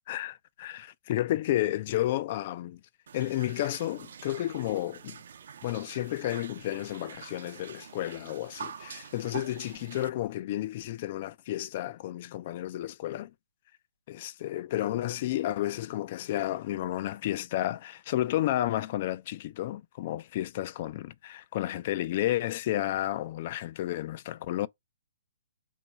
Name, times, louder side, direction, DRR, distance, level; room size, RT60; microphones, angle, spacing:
voice 1, 0.1-2.8 3.1-5.2 5.6-13.3 14.1-24.7, left 14 dB, 40° left, 0.3 m, -32 dB
sound 1, 3.1-10.1, right 7 dB, 65° right, 0.4 m, -45 dB
3.0 x 2.3 x 4.0 m
hypercardioid pair, 150°, 0 cm